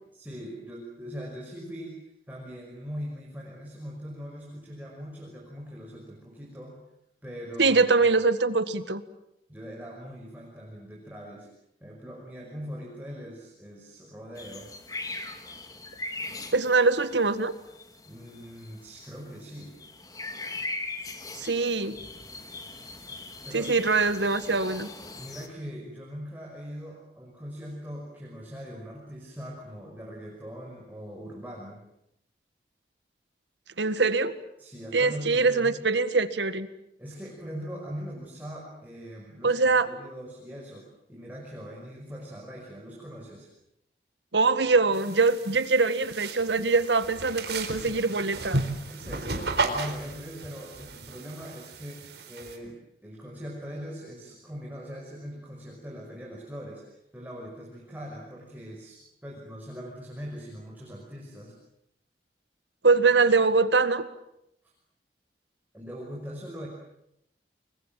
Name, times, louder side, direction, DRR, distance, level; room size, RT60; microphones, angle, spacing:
voice 1, 0.1-6.8 7.2-8.3 9.5-11.5 11.8-14.7 18.1-19.8 22.9-23.1 23.4-23.8 25.2-31.8 34.6-35.8 37.0-39.6 39.9-43.5 48.9-61.6 65.7-66.7, equal, 10° right, -2 dB, 5.7 m, -41 dB
voice 2, 7.6-9.0 16.5-17.5 21.4-22.0 23.5-24.9 33.8-34.3 34.9-36.7 39.4-39.9 44.3-48.6 62.8-64.1, right 4 dB, 90° right, 12 dB, 1.8 m, -23 dB
sound 1, 14.4-25.5, left 2 dB, 20° left, 2.4 m, -40 dB
sound 2, 44.9-52.6, right 3 dB, 75° right, 4.2 m, -34 dB
29.5 x 23.0 x 7.6 m, 0.80 s
head